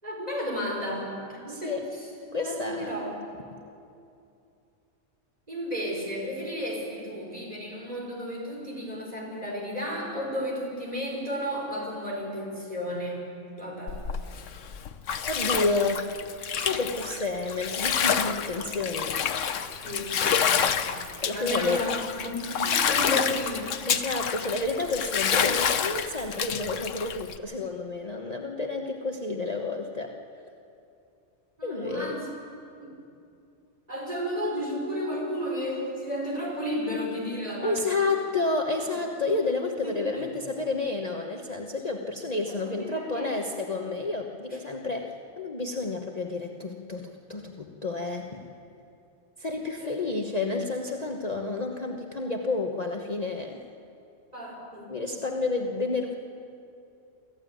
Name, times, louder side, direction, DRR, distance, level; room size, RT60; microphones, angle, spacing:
voice 1, 0.0-1.8 2.4-3.2 5.5-13.2 13.6-14.0 19.8-20.7 21.3-23.7 31.6-32.3 32.8-32.9 33.9-38.1 39.8-40.3 42.5-43.3 49.6-49.9 54.3-54.9, equal, 30° right, -2 dB, 5.8 m, -33 dB
voice 2, 1.5-1.9 2.3-3.0 15.3-16.3 16.6-19.2 21.2-21.9 23.1-23.2 23.9-30.1 31.6-32.2 37.6-48.4 49.4-53.6 54.9-56.1, left 3 dB, 35° left, 1 dB, 1.2 m, -30 dB
Bathtub (filling or washing), 13.9-27.4, left 7 dB, 75° left, 1.2 m, -28 dB
24.5 x 15.0 x 9.2 m, 2.6 s
omnidirectional pair, 1.3 m